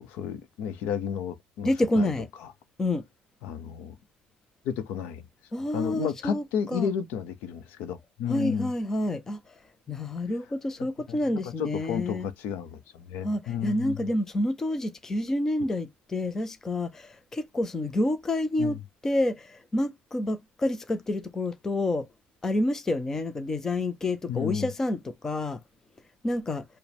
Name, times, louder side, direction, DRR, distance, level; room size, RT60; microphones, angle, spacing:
voice 1, 0.0-2.1 3.4-4.0 4.6-5.2 5.7-8.7 11.1-11.2 11.4-14.1 18.6-18.8 24.3-24.7, left 8 dB, 65° left, 0.7 m, -32 dB
voice 2, 1.6-2.3 2.8-3.0 5.5-6.9 8.3-9.6 9.9-12.3 13.2-18.8 19.0-22.1 22.4-25.6 26.2-26.7, left 1 dB, 15° left, 0.5 m, -28 dB
4.9 x 2.1 x 3.3 m
cardioid pair, 180°, 3 cm